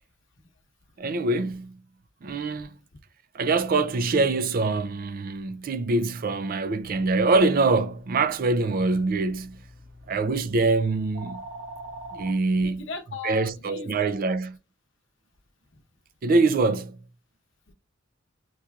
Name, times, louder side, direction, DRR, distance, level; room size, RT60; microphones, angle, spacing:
voice 1, 1.0-1.8 2.2-2.7 3.3-9.6 10.1-11.4 12.1-12.8 13.2-14.5 16.2-17.0, right 3 dB, 45° right, 0.4 m, -24 dB
sound 1, 6.9-12.3, right 1 dB, 70° right, 1.4 m, -44 dB
voice 2, 12.2-14.4 17.7-17.8, left 4 dB, 70° left, 0.9 m, -39 dB
6.9 x 3.1 x 2.3 m
head